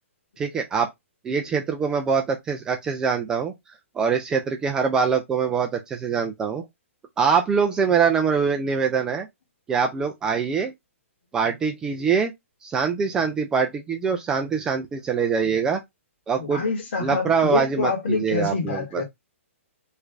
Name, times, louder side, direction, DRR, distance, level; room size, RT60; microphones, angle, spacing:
voice 1, 0.4-0.9 1.2-3.5 4.0-6.7 7.2-9.3 9.7-10.7 11.3-12.3 12.6-15.8 16.3-16.6 17.0-19.0, right 6 dB, 10° right, 0.3 m, -23 dB
voice 2, 16.4-19.0, left 4 dB, 50° left, 1.5 m, -26 dB
3.2 x 2.4 x 3.2 m
hypercardioid pair, 160°, 7 cm